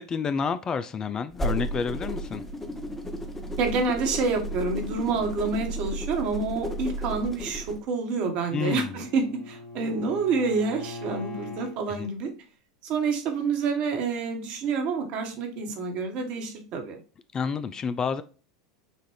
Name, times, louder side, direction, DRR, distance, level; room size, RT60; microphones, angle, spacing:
voice 1, 0.0-2.4 8.5-9.0 11.9-12.1 17.3-18.2, left 6 dB, 30° left, 0.4 m, -29 dB
sound 1, 1.3-7.8, right 1 dB, 10° left, 0.8 m, -33 dB
voice 2, 3.6-12.3 12.8-17.0, right 4 dB, 50° right, 1.3 m, -28 dB
Bowed string instrument, 8.0-11.8, left 3 dB, 55° left, 2.2 m, -41 dB
6.5 x 2.5 x 3.1 m
hypercardioid pair, 85°, 2 cm